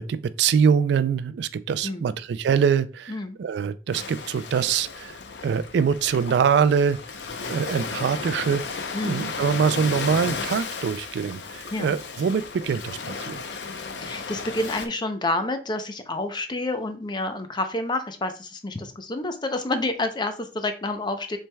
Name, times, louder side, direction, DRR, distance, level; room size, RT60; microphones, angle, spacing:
voice 1, 0.0-5.2 5.4-7.0 7.5-13.4, right 6 dB, 65° right, 0.3 m, -24 dB
voice 2, 1.8-2.2 3.1-3.4 8.9-9.3 11.7-11.9 14.0-21.4, left 2 dB, 25° left, 0.5 m, -29 dB
Ocean, 3.9-14.9, left 4 dB, 70° left, 0.7 m, -34 dB
7.1 x 3.3 x 2.2 m
head